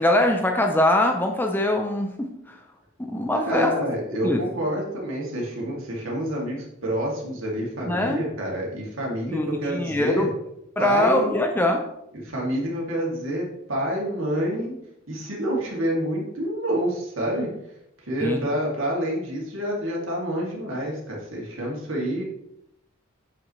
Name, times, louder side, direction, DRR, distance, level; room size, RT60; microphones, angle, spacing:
voice 1, 0.0-2.6 3.0-3.7 4.2-4.4 7.9-8.2 9.3-10.3 10.8-11.8 18.2-18.4, left 1 dB, 10° left, 3 dB, 0.6 m, -22 dB
voice 2, 3.3-10.3 10.8-11.3 12.2-14.8 15.1-17.5 18.0-22.2, equal, 75° right, -3 dB, 2.5 m, -28 dB
8.3 x 7.6 x 3.2 m, 0.79 s
head